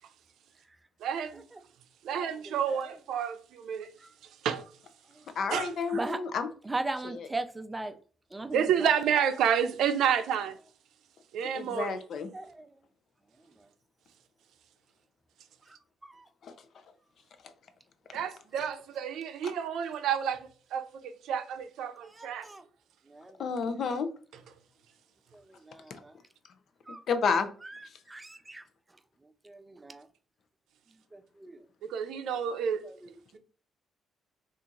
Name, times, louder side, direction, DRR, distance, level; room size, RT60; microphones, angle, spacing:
voice 1, 1.0-1.4 2.0-3.9 4.4-4.6 5.5-6.0 8.5-10.5 11.3-12.0 18.1-22.5 31.9-32.8, right 8 dB, 80° right, 0.5 m, -30 dB
voice 2, 2.1-2.8 4.0-4.1 5.2-5.3 5.9-6.2 6.7-8.0 8.3-8.7 12.3-12.7 16.0-16.3 22.1-22.6 23.1-23.4 25.3-26.1 26.9-27.0 27.6-27.7 28.1-28.6 29.4-30.1 31.1-31.6 32.8-33.4, right 2 dB, 15° right, 0.4 m, -38 dB
voice 3, 5.4-6.5 7.0-7.3 11.5-12.3 16.4-16.5 18.1-18.2 19.4-19.5 23.4-24.1 25.9-26.0 26.9-27.5 27.8-27.9, left 5 dB, 60° left, 0.5 m, -31 dB
2.9 x 2.4 x 3.7 m
cardioid pair, 90°, 0 cm